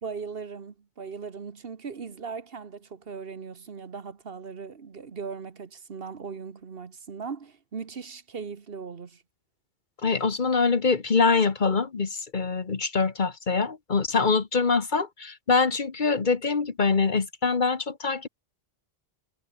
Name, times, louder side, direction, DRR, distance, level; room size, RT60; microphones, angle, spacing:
voice 1, 0.0-9.2, right 5 dB, 65° right, 1.5 m, -38 dB
voice 2, 10.0-18.3, left 4 dB, 50° left, 1.3 m, -24 dB
omnidirectional pair, 1.0 m